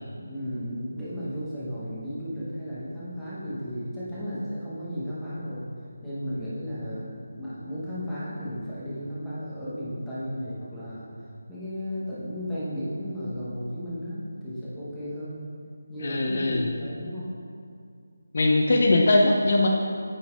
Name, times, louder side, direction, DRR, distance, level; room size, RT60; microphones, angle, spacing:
voice 1, 0.2-5.7 6.0-11.1 11.5-15.4 15.9-17.3, equal, ahead, -13 dB, 1.0 m, -34 dB
voice 2, 16.0-16.7 18.3-19.7, left 2 dB, 45° left, 1 dB, 0.4 m, -21 dB
8.9 x 3.9 x 3.8 m, 2.3 s
figure-of-eight pair, 175°, 0 cm